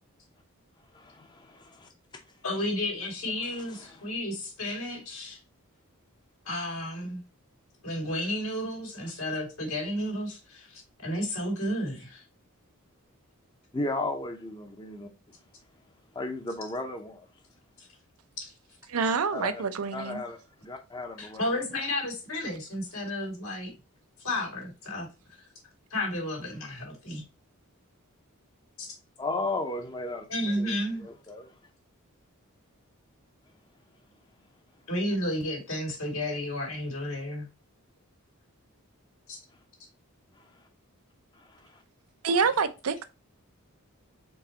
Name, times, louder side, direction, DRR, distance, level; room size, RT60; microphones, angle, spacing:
voice 1, 0.9-1.9 3.4-4.1 13.7-15.1 16.1-17.3 19.3-19.6 19.9-21.5 29.2-31.5 40.3-40.5 41.3-41.8, left 2 dB, 20° left, 0.6 m, -35 dB
voice 2, 2.4-5.4 6.5-7.2 7.8-12.2 17.8-17.9 18.4-18.5 21.2-23.7 24.2-25.1 25.9-27.2 28.8-28.9 30.3-31.0 34.9-37.5 39.3-39.4, left 1 dB, 75° left, 2.3 m, -32 dB
voice 3, 18.9-20.2 42.2-43.0, right 5 dB, 90° right, 0.6 m, -27 dB
4.6 x 4.0 x 2.8 m
head